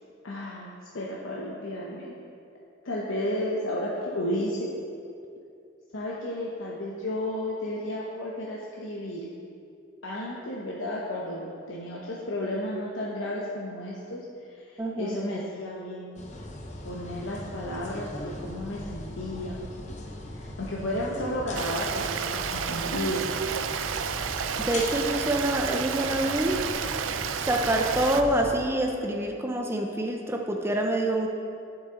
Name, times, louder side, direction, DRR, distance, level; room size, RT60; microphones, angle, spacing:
voice 1, 0.2-2.2 2.8-4.7 5.9-9.3 10.0-14.2 14.5-16.2 16.8-19.6 20.3-23.2, left 1 dB, 80° left, -4 dB, 0.9 m, -33 dB
voice 2, 14.8-15.2 24.6-26.6 27.4-31.3, right 1 dB, 10° right, 1 dB, 0.5 m, -26 dB
sound 1, 16.2-28.6, left 1 dB, 35° left, 0.8 m, -39 dB
Stream, 21.5-28.2, right 7 dB, 80° right, 0.4 m, -31 dB
9.5 x 7.2 x 3.8 m, 2.5 s
head